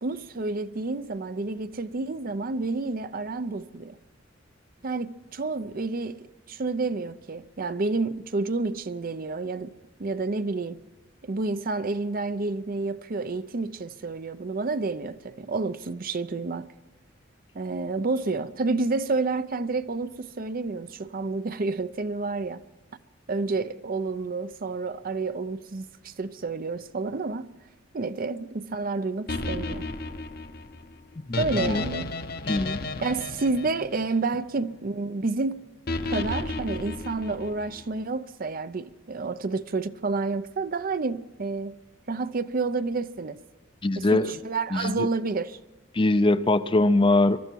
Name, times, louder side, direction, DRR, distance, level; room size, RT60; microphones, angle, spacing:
voice 1, 0.0-3.9 4.8-9.7 10.0-10.8 11.2-16.7 17.5-22.6 23.3-27.5 27.9-29.8 31.4-32.1 33.0-35.6 36.1-41.8 42.1-43.4 44.0-45.6, right 3 dB, 45° right, 0.6 m, -29 dB
sound 1, 29.3-34.6 35.9-37.8, left 3 dB, 50° left, 0.9 m, -33 dB
voice 2, 31.3-31.8 32.5-32.8 43.8-44.3 44.7-45.1 45.9-47.4, left 2 dB, 25° left, 0.5 m, -22 dB
23.5 x 13.0 x 4.6 m
head